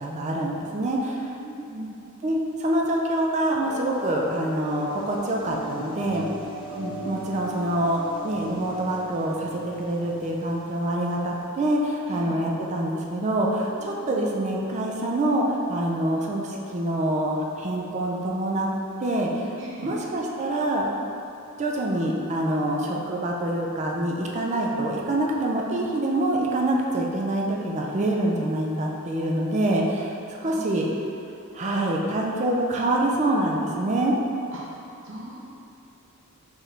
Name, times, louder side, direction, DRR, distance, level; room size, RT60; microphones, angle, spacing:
voice 1, 0.0-1.3 2.2-6.3 6.7-18.7 19.0-19.5 19.8-20.9 21.6-30.1 30.4-30.8 31.5-34.1, right 1 dB, 35° right, -1 dB, 0.4 m, -25 dB
voice 2, 1.3-1.9 12.1-12.4 13.8-14.1 19.6-19.9 30.4-30.7 34.5-34.6 35.0-35.4, right 1 dB, 65° right, -6 dB, 0.8 m, -39 dB
sound 1, 3.6-11.5, equal, 20° left, 0.6 m, -39 dB
4.5 x 3.1 x 3.3 m, 2.7 s
head